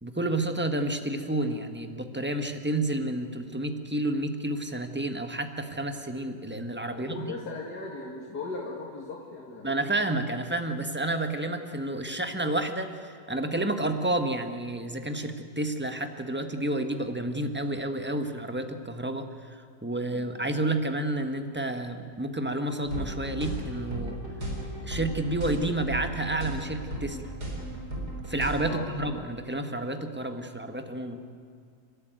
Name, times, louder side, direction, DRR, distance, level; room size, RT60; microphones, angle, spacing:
voice 1, 0.0-7.3 9.6-24.2 24.8-27.2 28.3-31.2, right 1 dB, 5° right, 6 dB, 1.4 m, -30 dB
voice 2, 6.9-9.9 20.1-20.3 28.6-28.9, left 3 dB, 85° left, -2 dB, 2.8 m, -38 dB
sound 1, 22.8-28.8, right 1 dB, 80° right, 4.9 m, -35 dB
29.5 x 13.0 x 9.3 m, 2.3 s
omnidirectional pair, 1.7 m